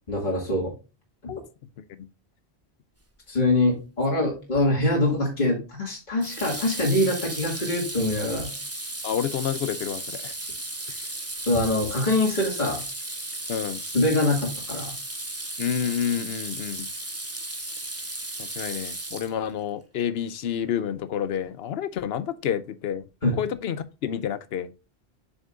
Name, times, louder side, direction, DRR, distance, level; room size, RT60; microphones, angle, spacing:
voice 1, 0.1-0.7 3.3-8.5 11.4-12.8 13.9-14.9 23.2-23.3, left 2 dB, 45° left, 2.4 m, -24 dB
Water tap faucet / Sink (filling or washing), 4.5-4.9 6.2-19.6, right 2 dB, 15° right, 1.0 m, -35 dB
voice 2, 9.0-10.3 10.9-11.0 13.5-13.8 15.6-16.9 18.4-23.0 23.3-24.7, left 9 dB, 70° left, 0.9 m, -29 dB
7.3 x 6.2 x 2.4 m
omnidirectional pair, 1.1 m